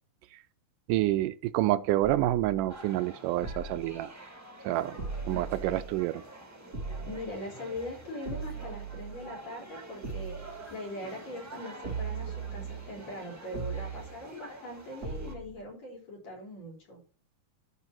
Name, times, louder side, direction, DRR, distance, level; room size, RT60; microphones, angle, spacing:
voice 1, 0.9-4.1 4.6-5.0 5.3-6.2, right 15 dB, 80° right, 2.1 m, -28 dB
sound 1, 2.7-15.4, right 1 dB, 15° right, 0.6 m, -48 dB
sound 2, 3.4-4.0 5.0-6.0 6.7-7.3 8.2-9.3 10.0-10.6 11.8-13.0 13.5-14.2 15.0-15.6, right 5 dB, 40° right, 1.3 m, -38 dB
voice 2, 7.1-17.0, left 1 dB, 55° left, 4.8 m, -41 dB
11.0 x 4.8 x 4.4 m
omnidirectional pair, 3.8 m